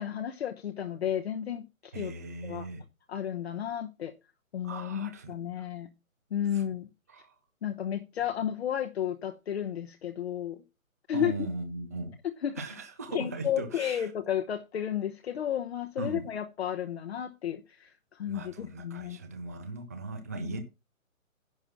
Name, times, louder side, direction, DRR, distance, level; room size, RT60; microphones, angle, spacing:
voice 1, 0.0-2.1 2.4-2.7 3.1-4.1 4.5-5.9 6.3-6.9 7.6-10.6 11.1-11.5 12.2-12.6 13.1-19.2 20.4-20.6, left 9 dB, 50° left, 1.1 m, -33 dB
voice 2, 1.9-2.8 4.6-5.7 6.5-6.6 7.1-7.4 11.1-12.1 12.6-14.1 16.0-16.2 18.3-20.6, right 2 dB, 10° right, 0.5 m, -38 dB
11.0 x 5.9 x 5.9 m
figure-of-eight pair, 145°, 41 cm